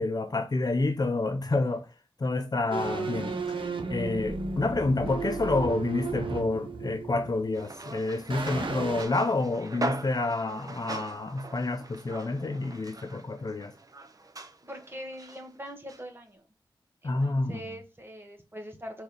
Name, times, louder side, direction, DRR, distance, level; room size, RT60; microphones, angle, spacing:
voice 1, 0.0-1.9 2.2-3.4 3.9-13.7 17.0-17.5, left 2 dB, 50° left, 0.7 m, -28 dB
sound 1, 2.7-7.9 8.3-9.0, right 4 dB, 70° right, 1.0 m, -34 dB
sound 2, 7.5-15.4 15.9-16.0, right 2 dB, 45° right, 0.7 m, -40 dB
voice 2, 14.6-16.5 17.0-19.0, equal, 25° right, 1.6 m, -42 dB
4.5 x 4.0 x 5.3 m
wide cardioid pair, 65°, 9 cm